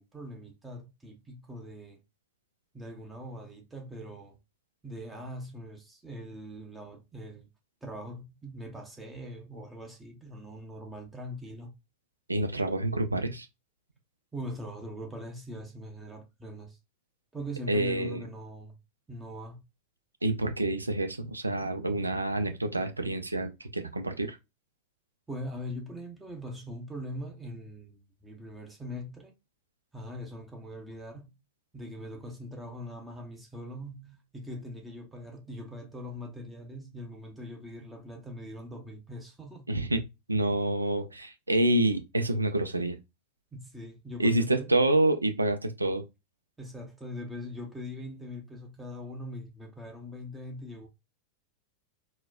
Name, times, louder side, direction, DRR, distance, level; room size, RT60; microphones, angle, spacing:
voice 1, 0.0-2.0 2.7-4.4 4.8-7.5 7.8-11.7 14.3-16.8 17.3-18.8 19.1-19.6 25.3-29.3 29.9-31.3 31.7-39.7 43.6-44.7 46.6-50.9, equal, 10° right, 0.7 m, -42 dB
voice 2, 12.3-13.5 17.7-18.2 20.2-24.4 39.7-40.0 40.3-43.0 44.2-46.0, right 2 dB, 80° right, 0.4 m, -27 dB
3.9 x 2.1 x 2.4 m
figure-of-eight pair, 90°, 0 cm